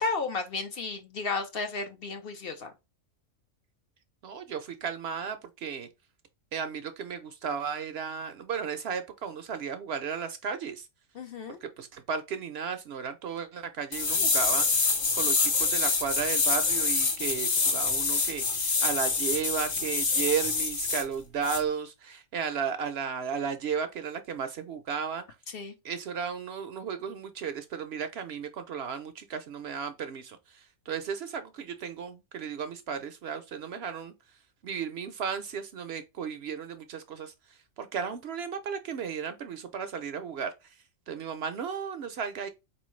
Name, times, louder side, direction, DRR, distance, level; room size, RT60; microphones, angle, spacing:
voice 1, 0.0-2.7 11.1-11.6 25.5-25.7, left 4 dB, 55° left, 0.8 m, -33 dB
voice 2, 4.2-5.9 6.5-10.9 11.6-25.2 25.8-34.1 34.6-40.8 41.1-42.5, right 6 dB, 65° right, 0.7 m, -34 dB
sound 1, 13.9-21.0 21.4-21.6, left 4 dB, 80° left, 1.5 m, -26 dB
4.3 x 3.1 x 3.1 m
omnidirectional pair, 1.3 m